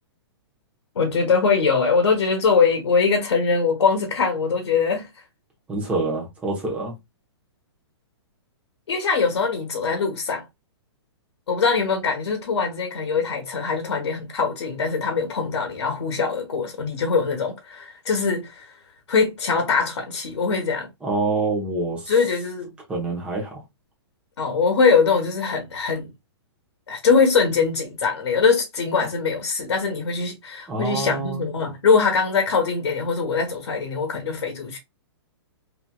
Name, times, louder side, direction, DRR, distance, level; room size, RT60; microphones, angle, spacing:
voice 1, 0.9-5.1 8.9-10.4 11.5-18.7 19.1-20.9 22.1-22.7 24.4-26.1 26.9-34.8, left 5 dB, 80° left, 0.9 m, -22 dB
voice 2, 5.7-7.0 21.0-22.1 22.9-23.6 30.7-31.4, right 3 dB, 10° right, 0.9 m, -26 dB
2.9 x 2.7 x 2.2 m
hypercardioid pair, 155°, 14 cm